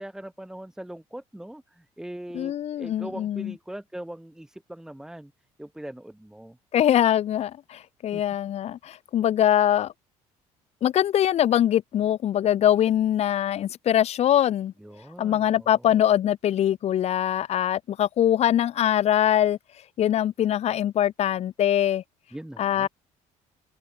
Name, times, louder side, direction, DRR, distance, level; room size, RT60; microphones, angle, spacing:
voice 1, 0.0-5.3 5.6-6.6 8.1-8.2 14.8-16.0 22.3-22.9, right 1 dB, 5° right, 4.9 m, -41 dB
voice 2, 2.3-3.5 6.7-9.9 10.8-14.7 15.2-19.6 20.0-22.0 22.6-22.9, left 11 dB, 50° left, 3.3 m, -23 dB
cardioid pair, 125°, 13 cm